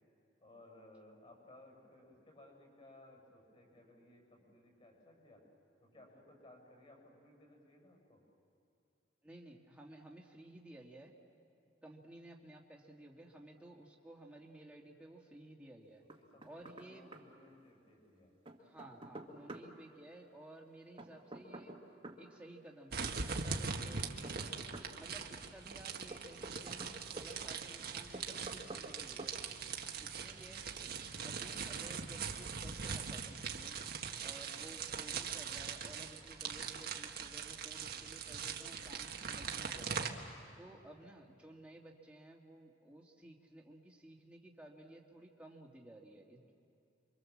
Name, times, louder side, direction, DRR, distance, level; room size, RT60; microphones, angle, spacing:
voice 1, 0.4-5.4 5.8-8.2 16.2-18.3 29.6-30.1 40.5-40.9, left 1 dB, 35° left, 1 dB, 8.0 m, -61 dB
voice 2, 9.2-11.1 11.8-16.0 16.4-17.1 18.6-21.7 22.1-24.4 25.0-29.4 30.0-30.9 31.2-33.8 34.2-40.1 40.6-46.5, right 1 dB, 5° right, -1 dB, 2.3 m, -55 dB
Knock, 16.1-16.9 17.1-17.2 18.4-19.7 21.0-22.2 23.7-24.9 26.1-27.3 28.1-28.9 29.2-29.3, right 2 dB, 30° right, 1.9 m, -48 dB
sound 1, 22.9-40.1, right 6 dB, 55° right, 1.6 m, -42 dB
28.5 x 24.5 x 7.4 m, 2.7 s
head